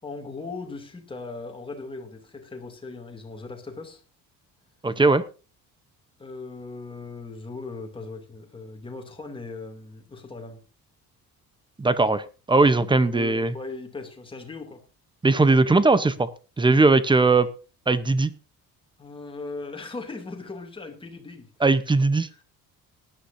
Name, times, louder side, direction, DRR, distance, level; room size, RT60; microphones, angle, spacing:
voice 1, 0.0-4.0 6.2-10.6 13.1-14.8 19.0-21.5 22.3-22.4, left 3 dB, 15° left, 3 dB, 2.6 m, -38 dB
voice 2, 4.8-5.2 11.8-13.5 15.2-16.3 16.6-17.5 17.9-18.3 21.6-22.3, right 3 dB, 15° right, 14 dB, 0.7 m, -19 dB
19.0 x 11.5 x 2.6 m, 0.33 s
cardioid pair, 175°, 36 cm